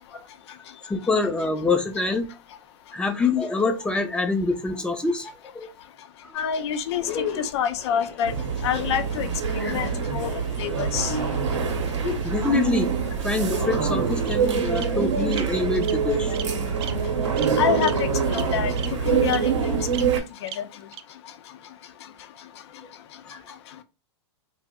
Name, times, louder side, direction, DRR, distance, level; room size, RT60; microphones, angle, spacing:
voice 1, 0.1-0.6 0.9-2.3 2.9-5.7 6.2-6.3 9.6-9.8 12.2-12.9 13.2-16.3 23.3-23.4, left 3 dB, 5° left, 0.4 m, -26 dB
voice 2, 6.3-7.1 7.4-8.3 8.6-9.3 9.7-10.3 10.6-11.1 17.6-19.9 20.4-20.7, left 8 dB, 65° left, 0.5 m, -27 dB
sound 1, 6.4-6.5 6.9-19.3, left 5 dB, 40° left, 0.8 m, -39 dB
sound 2, 8.2-20.2, right 6 dB, 90° right, 0.7 m, -25 dB
Bird vocalization bird call bird song, 12.8-13.6 14.2-14.3 14.7-14.8 15.3-15.4 15.8-16.0 16.3-16.5 16.8-16.9 17.4-17.5 17.8-17.9 18.3-18.4 18.8-18.9 19.3-19.4 19.9-20.0 20.5-20.6 20.9-21.0, right 10 dB, 60° right, 0.4 m, -35 dB
2.6 x 2.0 x 3.4 m
hypercardioid pair, 125°, 15 cm